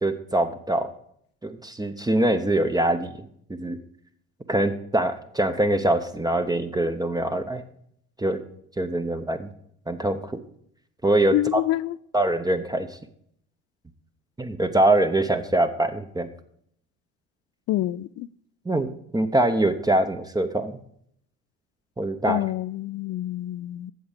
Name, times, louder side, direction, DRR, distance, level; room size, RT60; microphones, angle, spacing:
voice 1, 0.0-0.9 1.4-3.1 3.6-3.8 4.5-7.6 8.2-8.4 8.8-9.5 9.9-10.3 11.0-11.6 12.1-12.9 14.4-16.3 18.7-20.7 22.0-22.4, right 1 dB, 10° right, 0.8 m, -23 dB
voice 2, 11.3-12.0 17.7-18.3 22.3-23.9, left 15 dB, 45° left, 0.4 m, -27 dB
8.0 x 6.9 x 5.0 m
hypercardioid pair, 65°, 33 cm